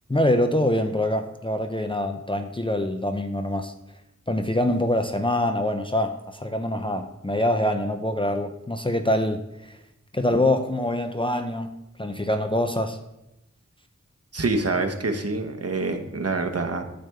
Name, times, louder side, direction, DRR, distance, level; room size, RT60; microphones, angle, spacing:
voice 1, 0.1-3.7 4.3-9.8 10.1-13.0, left 1 dB, 15° left, 0.5 m, -25 dB
voice 2, 14.3-16.8, right 3 dB, 55° right, 1.0 m, -26 dB
9.2 x 3.4 x 6.7 m
wide cardioid pair, 60°, 30 cm